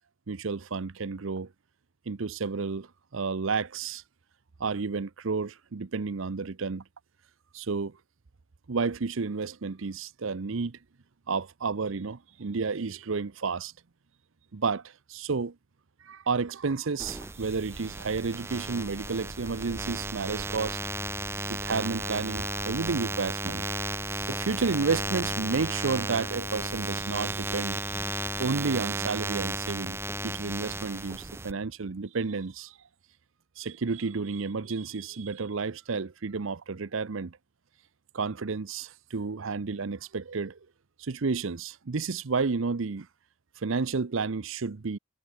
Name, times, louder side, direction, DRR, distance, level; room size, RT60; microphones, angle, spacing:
voice 1, 0.3-1.5 2.1-4.0 4.6-6.8 7.5-8.0 8.7-10.8 11.3-13.7 14.5-15.5 16.0-20.8 21.5-23.7 24.3-30.0 30.2-32.8 33.6-37.4 38.1-40.6 41.0-43.1 43.6-45.0, right 4 dB, 70° right, 0.7 m, -31 dB
sound 1, 17.0-31.5, right 3 dB, 10° right, 0.3 m, -34 dB
head